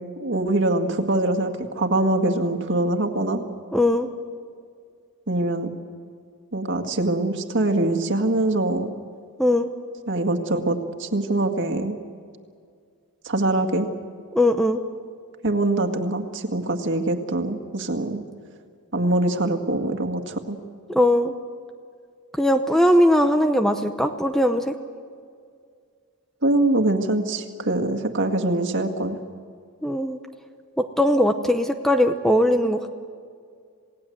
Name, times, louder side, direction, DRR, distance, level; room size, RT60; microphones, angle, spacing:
voice 1, 0.2-3.4 5.3-5.7 6.5-8.9 10.1-12.0 13.2-13.9 15.4-18.2 18.9-20.6 26.4-29.2, right 2 dB, 55° right, 5 dB, 1.9 m, -23 dB
voice 2, 3.7-4.1 9.4-9.7 14.3-14.8 20.9-21.3 22.4-24.7 29.8-30.2 30.8-32.9, left 1 dB, ahead, 6 dB, 0.8 m, -20 dB
28.0 x 18.0 x 7.9 m, 2.2 s
head